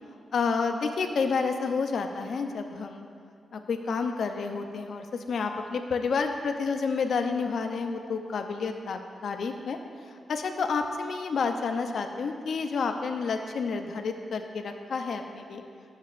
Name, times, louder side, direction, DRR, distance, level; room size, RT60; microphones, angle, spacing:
voice 1, 0.3-3.1 3.5-9.8 10.3-15.6, left 5 dB, 65° left, 5 dB, 0.5 m, -30 dB
11.0 x 7.2 x 2.5 m, 2.3 s
wide cardioid pair, 115°, 0 cm